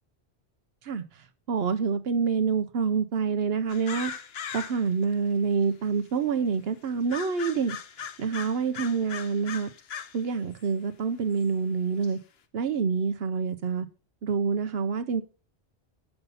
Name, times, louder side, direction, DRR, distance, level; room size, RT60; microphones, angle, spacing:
voice 1, 1.5-4.1 4.5-7.8 8.2-9.7 10.1-12.2 12.5-13.9 14.2-15.2, right 5 dB, 70° right, 0.9 m, -27 dB
sound 1, 3.7-5.0 5.6-5.7 7.1-10.2 10.6-10.7 11.4-11.5 12.0-12.1, left 7 dB, 70° left, 1.0 m, -39 dB
6.8 x 5.8 x 5.5 m
omnidirectional pair, 1.1 m